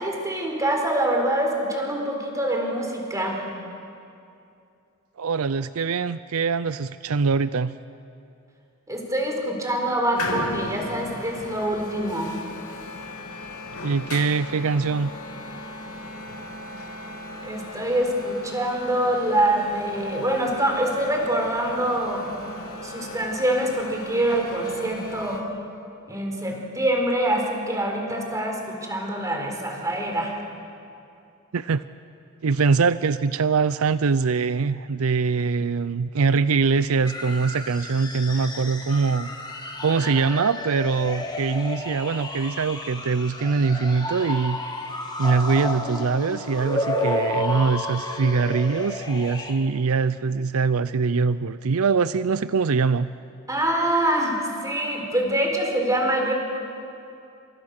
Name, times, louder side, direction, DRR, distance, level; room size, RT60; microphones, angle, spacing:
voice 1, 0.0-3.4 8.9-12.3 17.4-22.3 22.8-25.4 26.1-30.3 53.5-56.3, right 1 dB, 15° right, 1 dB, 4.2 m, -25 dB
voice 2, 5.2-7.7 13.8-15.1 31.5-31.8 32.4-39.3 39.8-44.6 45.2-53.1, right 4 dB, 70° right, 15 dB, 0.5 m, -23 dB
sound 1, 10.1-25.4, left 2 dB, 80° left, 3.3 m, -37 dB
sound 2, 37.0-49.5, left 1 dB, 20° left, 2.2 m, -31 dB
29.5 x 26.0 x 6.6 m, 2.6 s
head